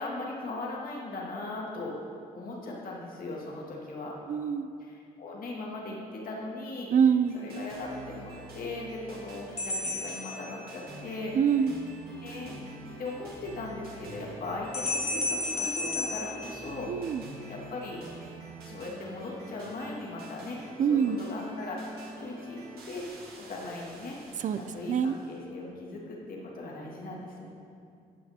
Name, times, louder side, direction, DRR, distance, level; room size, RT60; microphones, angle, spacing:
voice 1, 0.0-2.0 2.3-4.2 4.8-6.9 7.3-11.3 12.2-12.6 13.0-17.1 17.5-18.0 18.6-20.6 20.9-23.0 23.4-24.2 24.6-27.5, left 2 dB, 60° left, -3 dB, 2.0 m, -39 dB
voice 2, 4.3-4.7 6.9-7.4 11.3-11.8 16.9-17.2 20.8-21.2 24.4-24.6 24.9-25.2, right 7 dB, 50° right, 12 dB, 0.5 m, -25 dB
sound 1, 7.2-25.4, right 2 dB, 75° right, 1.7 m, -46 dB
sound 2, 9.6-11.1 14.7-17.2, left 2 dB, 40° left, 1.4 m, -33 dB
17.5 x 5.9 x 2.8 m, 2.5 s
supercardioid pair, 65°, 16 cm